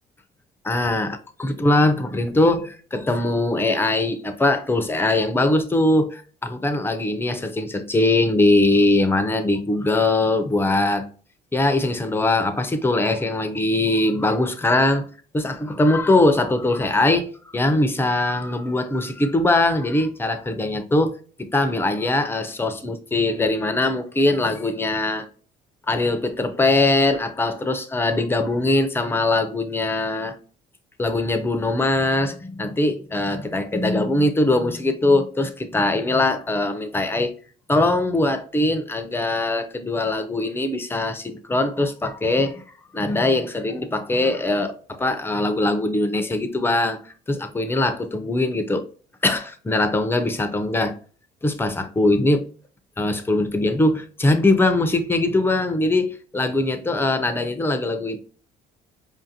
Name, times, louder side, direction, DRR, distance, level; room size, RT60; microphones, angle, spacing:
voice 1, 0.6-11.1 11.5-15.1 15.3-25.3 25.9-30.3 31.0-37.3 37.7-42.6 42.9-47.0 47.3-48.9 49.2-51.0 51.4-52.4 53.0-58.2, left 2 dB, 15° left, 0.5 m, -21 dB
4.9 x 2.5 x 2.7 m
cardioid pair, 110°, 17 cm